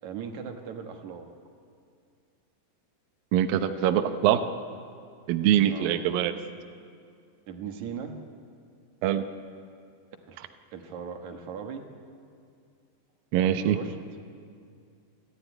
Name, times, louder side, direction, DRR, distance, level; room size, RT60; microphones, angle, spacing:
voice 1, 0.0-1.3 5.7-6.4 7.5-8.2 10.3-11.9 13.5-14.0, right 7 dB, 60° right, 5 dB, 2.4 m, -39 dB
voice 2, 3.3-4.4 5.3-6.3 9.0-9.2 13.3-13.8, right 11 dB, 75° right, 8 dB, 2.5 m, -23 dB
29.0 x 12.0 x 9.9 m, 2.3 s
omnidirectional pair, 4.3 m